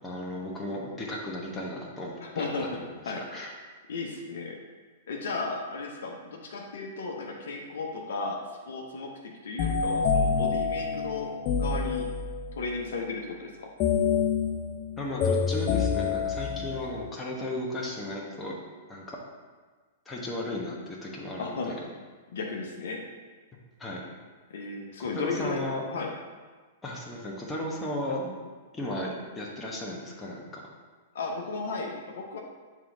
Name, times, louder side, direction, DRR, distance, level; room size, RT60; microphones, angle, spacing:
voice 1, 0.0-2.9 3.3-3.5 15.0-18.5 18.9-19.2 20.1-21.8 23.8-24.0 25.0-26.0 26.8-28.3 28.7-30.6, left 1 dB, 15° left, -3 dB, 1.1 m, -35 dB
voice 2, 2.2-2.8 3.1-3.2 3.9-4.6 5.1-8.4 8.7-12.0 12.6-13.7 21.4-21.7 22.3-23.0 24.5-25.6 25.9-26.1 31.1-32.4, left 3 dB, 65° left, 0 dB, 0.8 m, -34 dB
sound 1, 9.6-12.6 13.8-17.1, left 6 dB, 40° left, 0.5 m, -27 dB
7.4 x 3.7 x 3.9 m, 1.4 s
figure-of-eight pair, 105°, 0 cm